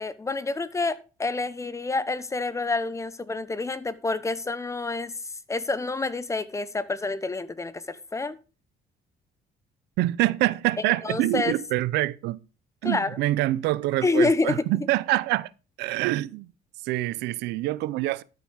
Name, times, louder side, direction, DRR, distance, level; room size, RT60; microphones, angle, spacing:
voice 1, 0.0-5.1 5.5-8.4 11.0-11.5 12.8-13.2 14.0-14.6, left 3 dB, 15° left, 0.9 m, -28 dB
voice 2, 10.0-12.4 12.8-15.5 15.8-16.5 16.8-18.2, right 17 dB, 90° right, 0.6 m, -25 dB
12.5 x 6.9 x 4.7 m
cardioid pair, 110°, 17 cm